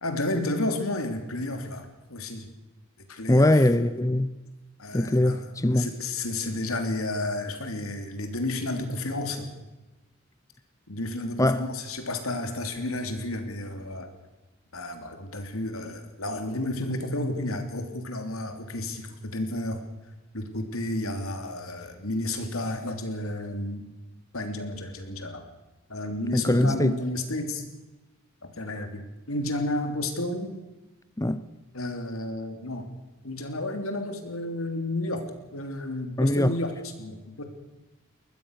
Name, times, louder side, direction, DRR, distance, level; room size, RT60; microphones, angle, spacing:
voice 1, 0.0-2.5 3.1-3.6 4.8-5.5 5.7-9.5 10.9-14.1 14.7-19.8 20.3-23.8 24.3-25.5 25.9-27.6 28.4-30.6 31.7-32.9 33.2-37.4, left 1 dB, 85° left, 3.2 m, -32 dB
voice 2, 3.3-4.3 4.9-5.9 11.4-11.7 26.3-26.9 31.2-31.4 36.2-36.5, left 1 dB, 15° left, 0.7 m, -22 dB
22.5 x 20.0 x 6.6 m
head